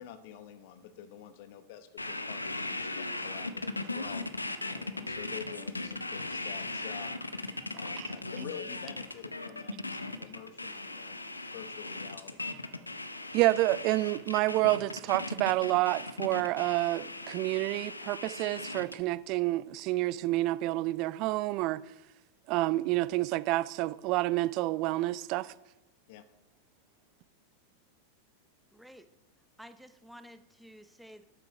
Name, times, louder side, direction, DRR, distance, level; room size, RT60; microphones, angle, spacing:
voice 1, 0.0-4.2 4.7-7.1 7.7-9.8 10.2-11.2 11.5-12.4 26.1-26.2, left 9 dB, 50° left, 0.9 m, -47 dB
sound 1, 2.0-19.0, left 2 dB, 80° left, 0.7 m, -38 dB
Harp, 2.1-21.5, equal, 90° right, 3.7 m, -63 dB
voice 2, 13.3-21.8 22.5-25.5, right 18 dB, 40° right, 0.3 m, -29 dB
voice 3, 28.7-29.1 29.6-31.2, equal, ahead, 0.6 m, -52 dB
12.5 x 6.6 x 4.9 m
figure-of-eight pair, 90°, 0 cm